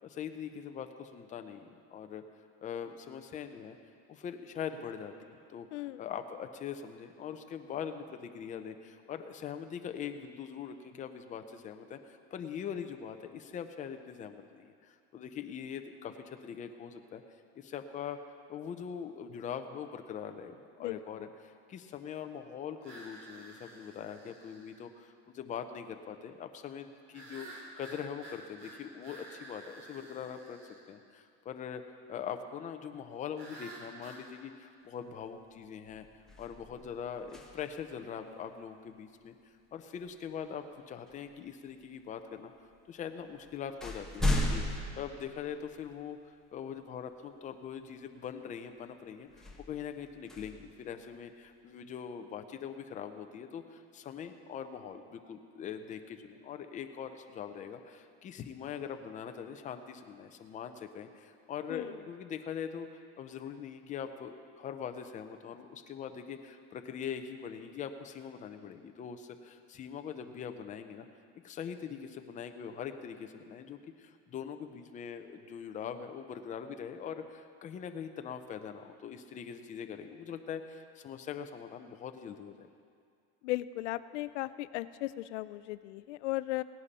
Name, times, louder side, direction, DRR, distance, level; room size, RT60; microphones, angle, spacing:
voice 1, 0.0-2.2 2.6-3.8 4.1-5.1 5.5-17.2 17.5-18.2 18.5-30.6 30.9-31.8 32.1-36.1 36.4-39.3 39.7-42.5 42.9-62.9 63.2-71.1 71.4-82.7, left 8 dB, 20° left, 7 dB, 0.7 m, -42 dB
voice 2, 20.8-21.3 61.7-61.9 83.4-86.6, left 17 dB, 85° left, 15 dB, 0.5 m, -36 dB
sound 1, 22.8-24.8 27.1-30.8 33.4-34.3, right 2 dB, 45° right, 2.7 m, -50 dB
sound 2, 35.2-35.5 35.8-37.9 40.1-40.3 41.1-41.8 42.7-42.8 43.2-46.0 46.6-46.7 49.3-51.5, left 1 dB, ahead, 1.2 m, -36 dB
17.5 x 10.5 x 4.2 m, 2.3 s
supercardioid pair, 140°, 35 cm